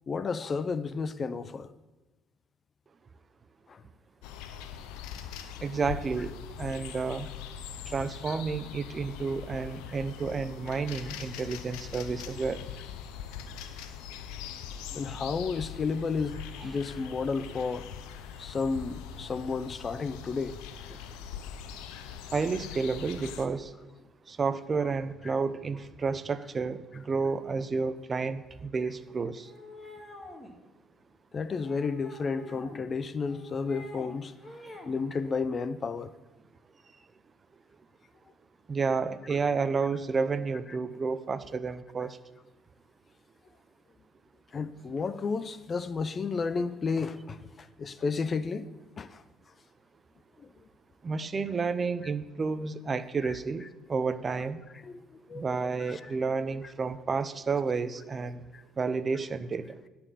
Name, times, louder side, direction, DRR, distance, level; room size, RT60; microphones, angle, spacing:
voice 1, 0.1-1.7 3.7-3.8 14.9-17.8 18.4-20.6 31.3-34.3 34.9-36.1 44.5-48.6 49.0-49.2 53.2-53.3 54.8-55.0 55.3-55.4 55.8-56.1 58.5-58.6, left 4 dB, 40° left, 0.5 m, -32 dB
sound 1, 4.2-23.5, left 8 dB, 80° left, 0.7 m, -42 dB
voice 2, 5.6-7.3 7.9-12.6 16.6-16.7 22.3-23.7 24.3-29.5 38.7-42.2 51.0-54.6 55.3-58.4 58.8-59.7, right 4 dB, 40° right, 0.6 m, -31 dB
sound 2, 29.4-30.5 31.5-32.9 33.2-34.1 34.4-34.9, left 2 dB, 15° left, 2.1 m, -46 dB
11.0 x 4.3 x 7.7 m
supercardioid pair, 65°, 0 cm